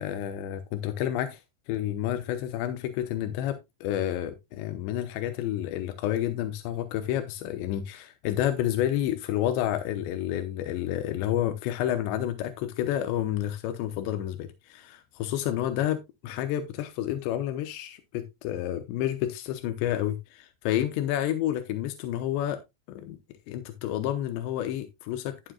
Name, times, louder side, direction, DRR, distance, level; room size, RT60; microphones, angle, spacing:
voice 1, 0.0-1.4 1.7-22.6 22.9-23.2 23.5-25.5, left 12 dB, 90° left, 3.1 m, -30 dB
11.5 x 8.9 x 2.3 m
omnidirectional pair, 5.0 m